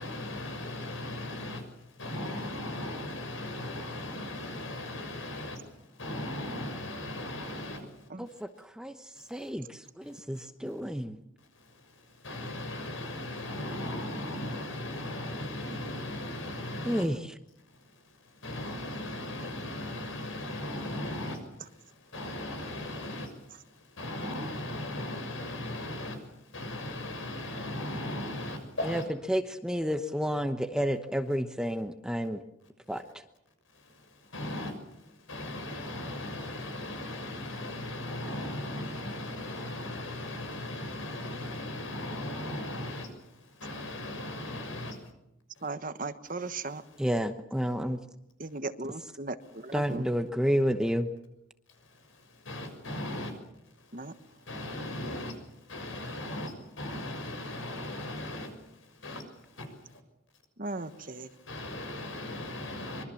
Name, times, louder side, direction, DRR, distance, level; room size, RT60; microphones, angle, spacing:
voice 1, 0.0-8.1 9.2-9.5 10.1-10.2 11.5-17.1 18.1-29.0 33.7-45.1 45.6-45.7 46.4-47.0 49.4-49.6 51.9-53.4 53.8-60.0 60.6-63.0, left 1 dB, 75° left, 7 dB, 6.6 m, -38 dB
voice 2, 8.2-11.2 16.8-17.3 28.8-29.0 29.3-32.4 32.9-33.2 47.0-48.0 49.7-51.1, equal, 5° right, 8 dB, 1.0 m, -30 dB
voice 3, 45.6-46.8 48.4-50.0 53.9-54.1 60.6-61.3, right 3 dB, 40° right, 11 dB, 1.2 m, -37 dB
25.0 x 23.5 x 7.1 m, 0.83 s
head